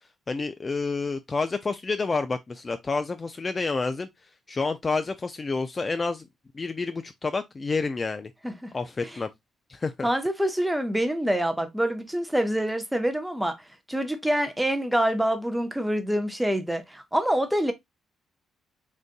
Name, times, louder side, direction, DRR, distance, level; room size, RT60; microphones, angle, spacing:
voice 1, 0.3-4.1 4.5-6.3 6.5-8.3 8.7-9.3 9.7-10.1, left 4 dB, 30° left, 0.3 m, -29 dB
voice 2, 10.0-13.6 13.9-17.7, right 1 dB, 5° right, 0.6 m, -26 dB
3.8 x 2.6 x 2.4 m
cardioid pair, 90°, 0 cm